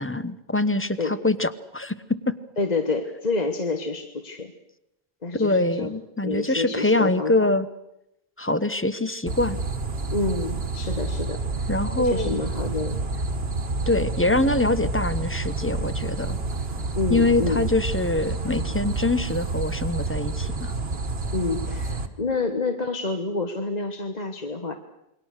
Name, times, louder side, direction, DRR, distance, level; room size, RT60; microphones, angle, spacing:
voice 1, 0.0-1.9 2.3-2.4 5.3-7.7 8.4-9.6 11.7-12.4 13.9-16.4 17.1-20.7, left 2 dB, 15° left, 13 dB, 0.9 m, -24 dB
voice 2, 2.6-4.5 5.2-5.9 6.2-7.5 10.1-11.7 12.0-13.2 17.0-17.6 21.3-24.7, left 3 dB, 40° left, 5 dB, 1.5 m, -28 dB
sound 1, 9.3-22.1, right 3 dB, 75° right, 1.8 m, -29 dB
28.0 x 23.0 x 6.6 m, 0.88 s
omnidirectional pair, 1.0 m